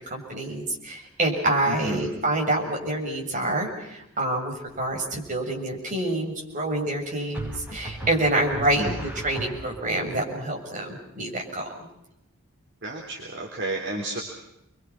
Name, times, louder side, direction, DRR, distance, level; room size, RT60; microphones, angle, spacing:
voice 1, 0.1-8.9 9.2-11.6, right 1 dB, 35° right, 0 dB, 7.0 m, -27 dB
voice 2, 1.7-2.1 8.5-9.0 12.8-14.2, right 2 dB, 55° right, 0 dB, 3.7 m, -32 dB
sound 1, 4.7-5.2 7.3-10.0, right 1 dB, 10° right, 6.8 m, -37 dB
29.5 x 23.5 x 6.0 m, 0.83 s
head